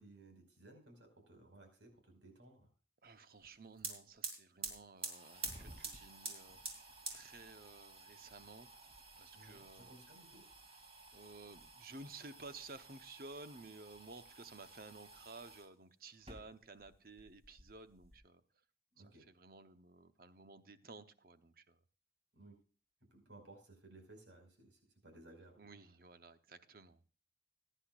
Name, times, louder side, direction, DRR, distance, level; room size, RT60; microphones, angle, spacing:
voice 1, 0.0-2.7 9.3-10.5 18.9-19.3 22.3-22.6 23.0-25.7, right 2 dB, 90° right, 4 dB, 5.3 m, -59 dB
voice 2, 3.0-8.8 9.2-9.9 11.1-18.4 19.3-21.8 25.6-27.0, right 3 dB, 50° right, 10 dB, 0.9 m, -54 dB
sound 1, 3.4-3.5 3.7-15.7 16.1-16.9 17.2-18.2, right 3 dB, 30° right, 2.7 m, -50 dB
21.0 x 10.0 x 2.5 m, 0.37 s
head